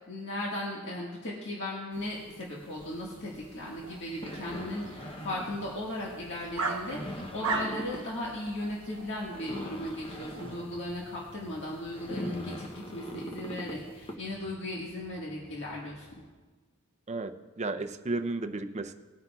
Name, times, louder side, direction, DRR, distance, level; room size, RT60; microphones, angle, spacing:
voice 1, 0.1-16.1, left 1 dB, 60° left, -4 dB, 1.7 m, -37 dB
sound 1, 1.9-14.2, left 1 dB, 25° left, 0.8 m, -43 dB
sound 2, 2.8-10.6, right 4 dB, 65° right, 1.0 m, -40 dB
sound 3, 10.3-16.3, equal, 85° left, 2.7 m, -57 dB
voice 2, 17.1-18.9, right 2 dB, 30° right, 7 dB, 0.5 m, -33 dB
19.5 x 9.6 x 2.3 m, 1.3 s
head